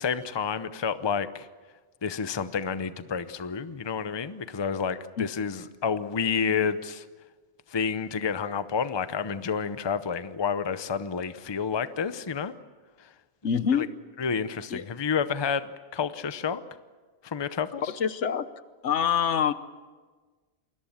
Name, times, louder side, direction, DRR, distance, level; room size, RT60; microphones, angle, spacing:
voice 1, 0.0-1.5 2.0-7.0 7.7-12.5 13.0-13.1 13.7-13.9 14.2-16.6 17.2-17.9, left 6 dB, 25° left, 13 dB, 0.7 m, -29 dB
voice 2, 13.4-13.9 14.7-14.8 17.8-18.5 18.8-19.5, left 7 dB, 75° left, 13 dB, 1.2 m, -25 dB
28.0 x 21.0 x 7.3 m, 1.4 s
omnidirectional pair, 1.2 m